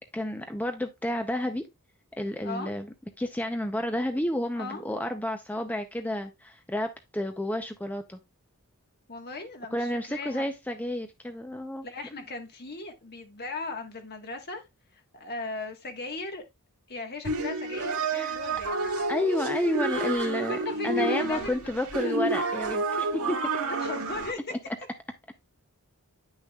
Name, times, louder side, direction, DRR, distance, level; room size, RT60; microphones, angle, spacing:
voice 1, 0.1-1.6 2.2-2.9 3.2-8.2 9.7-11.9 18.1-18.4 19.1-20.6 20.8-23.4 24.5-24.6, left 1 dB, 5° left, 0.5 m, -30 dB
voice 2, 9.1-10.4 11.8-14.6 15.1-16.4 16.9-18.9 20.4-22.2 23.6-24.4, left 3 dB, 45° left, 1.4 m, -38 dB
sound 1, 17.2-24.3, right 2 dB, 75° right, 1.6 m, -29 dB
9.9 x 6.3 x 2.3 m
head